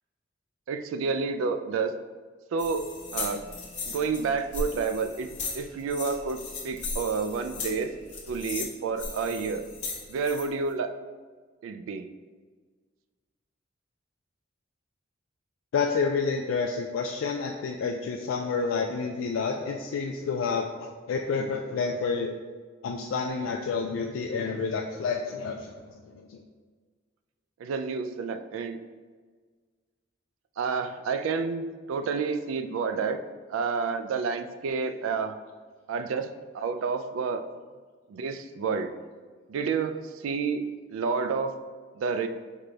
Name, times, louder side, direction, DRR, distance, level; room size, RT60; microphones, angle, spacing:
voice 1, 0.7-1.9 2.5-3.4 3.9-5.3 5.5-7.9 8.3-9.6 10.1-10.9 11.6-12.1 27.6-28.8 30.6-33.2 33.5-35.4 35.9-37.4 38.1-38.9 39.5-40.6 40.9-41.5 42.0-42.3, right 5 dB, 85° right, 9 dB, 0.3 m, -29 dB
sound 1, 2.6-10.4, left 3 dB, 40° left, 0.7 m, -37 dB
voice 2, 15.7-22.3 22.8-25.8 26.1-26.4, left 5 dB, 80° left, 1 dB, 0.3 m, -29 dB
4.8 x 2.3 x 3.9 m, 1.5 s
head